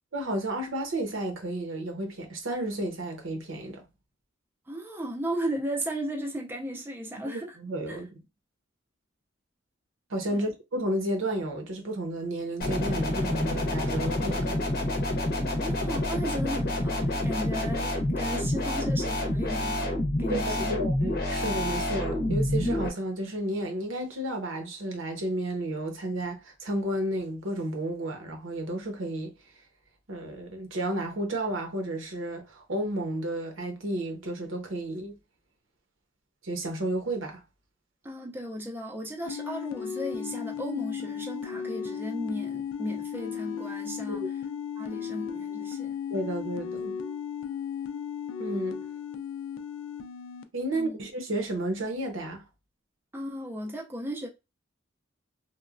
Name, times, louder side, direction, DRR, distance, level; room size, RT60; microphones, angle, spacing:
voice 1, 0.1-3.8 7.2-8.2 10.1-14.7 20.3-29.3 30.1-35.2 36.4-37.4 44.1-44.3 46.1-46.9 48.4-48.8 50.5-52.4, right 1 dB, 80° right, 0.8 m, -32 dB
voice 2, 4.7-7.6 7.9-8.0 10.3-10.4 15.6-19.9 20.2-20.8 38.0-44.3 44.8-46.0 50.7-51.0 53.1-54.3, equal, 10° right, 0.4 m, -35 dB
sound 1, 12.6-22.9, left 1 dB, 50° left, 0.7 m, -28 dB
sound 2, 39.2-50.4, left 7 dB, 75° left, 0.4 m, -35 dB
3.0 x 2.1 x 2.4 m
head